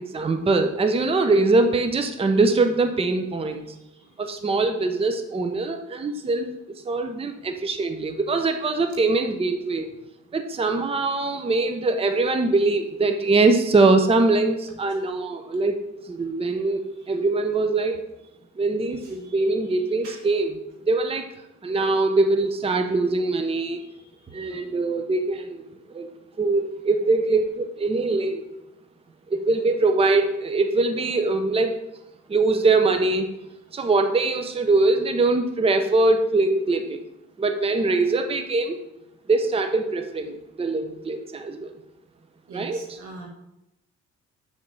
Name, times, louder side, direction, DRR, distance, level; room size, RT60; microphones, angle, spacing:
voice 1, 0.0-3.8 4.2-9.9 10.3-15.8 16.1-16.8 17.1-18.0 18.6-21.3 21.6-23.8 24.3-25.6 25.9-26.1 26.4-28.4 29.3-31.8 32.3-33.3 33.7-37.0 37.4-38.8 39.3-41.7 42.5-43.0, right 3 dB, 20° right, 6 dB, 0.6 m, -22 dB
voice 2, 42.5-43.3, right 3 dB, 90° right, 0 dB, 1.7 m, -41 dB
6.6 x 3.7 x 5.4 m, 0.90 s
cardioid pair, 90°, 30 cm